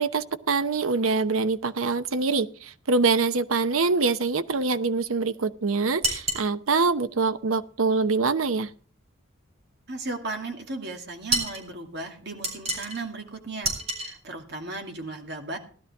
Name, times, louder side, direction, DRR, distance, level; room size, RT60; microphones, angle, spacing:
voice 1, 0.0-8.7, right 4 dB, 85° right, 12 dB, 0.8 m, -24 dB
sound 1, 6.0-6.5 11.3-11.6 12.4-13.0 13.6-14.1, right 2 dB, 30° right, 4.2 m, -28 dB
voice 2, 9.9-13.7 14.0-15.6, right 2 dB, 55° right, 3 dB, 2.4 m, -35 dB
16.5 x 12.0 x 3.5 m, 0.42 s
head